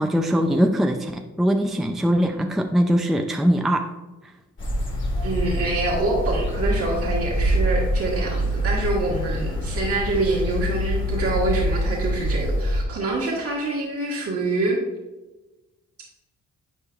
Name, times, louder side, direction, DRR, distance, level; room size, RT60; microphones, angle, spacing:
voice 1, 0.0-3.9, equal, ahead, 5 dB, 0.5 m, -21 dB
sound 1, 4.6-12.8, equal, 40° left, 2.0 m, -25 dB
voice 2, 5.2-14.8, right 2 dB, 50° right, -3 dB, 1.6 m, -26 dB
9.9 x 4.5 x 2.5 m, 1.1 s
cardioid pair, 70°, 30 cm